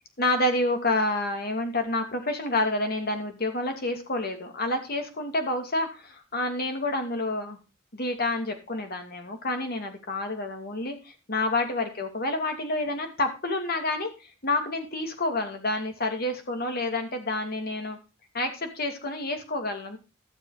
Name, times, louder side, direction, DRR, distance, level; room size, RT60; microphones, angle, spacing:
voice 1, 0.2-7.6 7.9-18.0 18.3-20.0, left 2 dB, 50° left, 5 dB, 2.6 m, -29 dB
13.0 x 7.0 x 4.9 m, 0.30 s
head